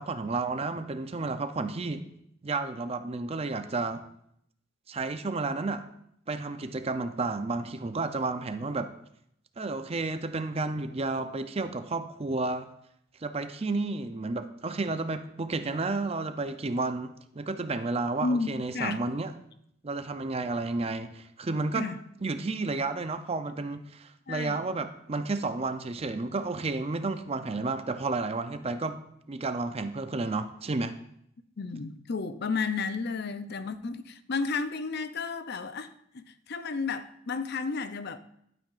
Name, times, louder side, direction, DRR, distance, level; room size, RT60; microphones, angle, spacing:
voice 1, 0.0-2.1 2.4-4.0 4.9-5.8 6.3-8.9 9.6-12.7 13.2-19.3 19.8-21.9 22.2-29.0 29.3-30.9, right 3 dB, 30° right, 0.5 m, -31 dB
voice 2, 18.2-19.0 21.7-22.0 24.3-24.7 31.6-38.2, left 4 dB, 55° left, 0.6 m, -32 dB
11.5 x 9.0 x 2.5 m
head